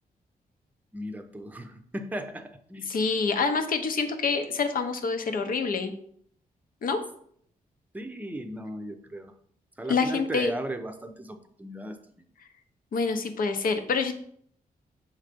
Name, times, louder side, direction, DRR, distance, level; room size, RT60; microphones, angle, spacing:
voice 1, 0.9-2.9 7.9-9.3 9.8-12.0, right 1 dB, 10° right, 7 dB, 0.7 m, -36 dB
voice 2, 2.9-5.9 6.8-7.0 9.9-10.5 12.9-14.1, left 4 dB, 65° left, 7 dB, 0.8 m, -26 dB
6.5 x 3.2 x 5.2 m, 0.64 s
cardioid pair, 105°, 16 cm